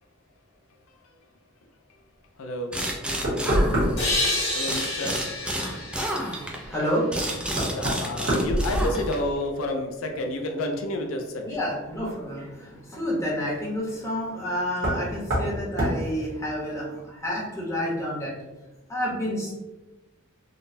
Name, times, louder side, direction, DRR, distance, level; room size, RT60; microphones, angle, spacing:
voice 1, 2.4-2.8 4.5-5.4 7.7-11.4, left 1 dB, 90° left, 3 dB, 0.4 m, -30 dB
sound 1, 2.7-4.3 4.7-9.4, right 1 dB, 5° right, 0.3 m, -31 dB
Knock, 3.2-4.2 6.6-6.7 7.5-9.3 9.7-10.2 12.0-12.1 14.8-15.1 15.3-15.5 15.8-16.0, equal, 65° right, 1.2 m, -25 dB
sound 2, 4.0-7.5, left 2 dB, 65° left, 1.1 m, -30 dB
voice 2, 6.5-7.8 8.3-8.5 11.4-18.3 18.9-19.6, equal, 15° left, -5 dB, 0.8 m, -29 dB
3.9 x 2.1 x 2.6 m, 1.1 s
head